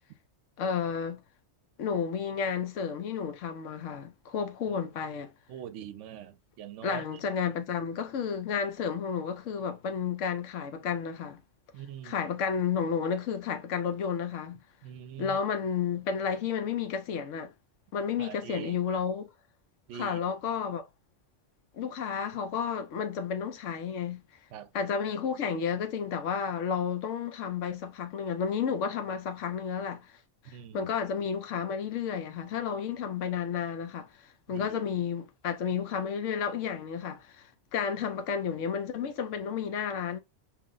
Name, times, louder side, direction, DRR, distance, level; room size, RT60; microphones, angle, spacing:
voice 1, 0.6-1.2 1.8-5.3 6.8-11.4 12.0-14.6 15.2-17.5 17.9-19.3 19.9-20.9 21.7-24.2 24.7-30.1 30.4-40.2, left 7 dB, 85° left, 1.0 m, -32 dB
voice 2, 5.5-7.2 11.7-12.2 14.8-15.4 18.2-18.8 19.9-20.2 24.5-24.7 30.5-30.9 34.5-34.8, right 10 dB, 80° right, 0.9 m, -43 dB
4.7 x 2.1 x 3.7 m
omnidirectional pair, 1.2 m